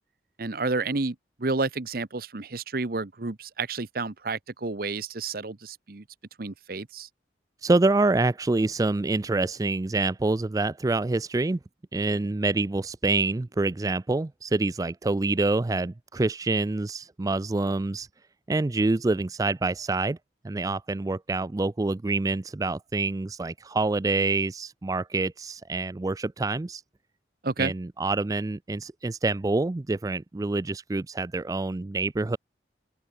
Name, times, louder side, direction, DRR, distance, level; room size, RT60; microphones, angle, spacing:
voice 1, 0.4-6.0 6.4-7.1 27.4-27.7, right 3 dB, 55° right, 0.9 m, -30 dB
voice 2, 7.6-11.6 11.9-18.1 18.5-20.2 20.4-26.8 27.6-32.4, right 3 dB, 20° right, 0.3 m, -26 dB
open air
head